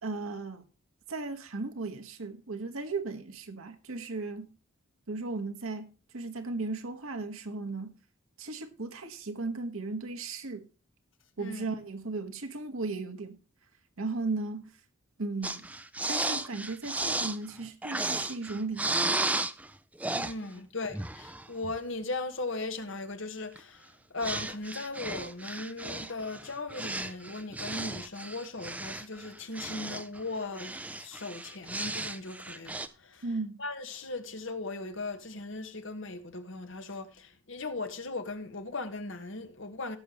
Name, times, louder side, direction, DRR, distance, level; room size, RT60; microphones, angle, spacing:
voice 1, 0.0-0.6 1.1-4.5 5.1-5.9 6.1-7.9 8.4-10.6 11.4-13.4 14.0-14.7 15.2-15.7 16.1-19.4 33.2-33.6, right 3 dB, 70° right, 1.4 m, -36 dB
sound 1, 15.4-19.7 20.0-20.3 20.9-21.8 23.6-23.7 24.2-30.2 30.6-32.9, right 2 dB, 5° right, 0.4 m, -34 dB
voice 2, 20.1-33.3 33.6-40.0, left 3 dB, 60° left, 1.3 m, -38 dB
17.0 x 6.7 x 3.0 m
head